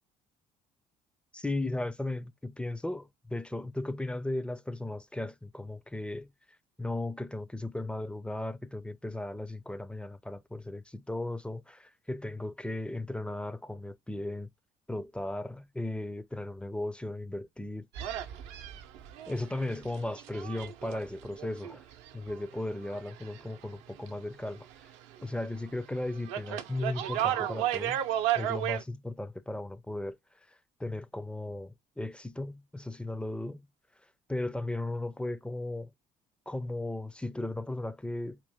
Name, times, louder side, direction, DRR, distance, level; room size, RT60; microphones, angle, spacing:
voice 1, 1.3-6.3 6.8-14.5 14.9-18.2 19.3-21.8 22.1-24.7 25.2-28.0 28.3-30.2 30.5-33.7 34.3-35.9 36.5-38.4, left 2 dB, 5° left, 0.5 m, -36 dB
sound 1, 17.9-23.7 24.0-25.3 25.6-28.8, right 12 dB, 65° right, 0.7 m, -34 dB
4.4 x 2.5 x 3.5 m
figure-of-eight pair, 50°, 21 cm